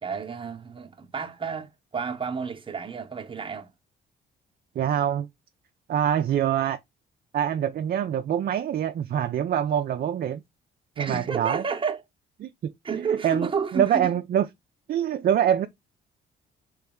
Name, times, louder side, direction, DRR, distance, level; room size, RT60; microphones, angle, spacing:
voice 1, 0.0-3.7 11.0-12.0 12.8-14.1, right 5 dB, 25° right, 0.8 m, -31 dB
voice 2, 4.8-5.3 5.9-6.8 7.3-10.4 11.0-11.6 12.4-12.7 13.2-14.5 14.9-15.7, right 10 dB, 50° right, 0.4 m, -25 dB
3.3 x 3.1 x 3.5 m
cardioid pair, 90°, 20 cm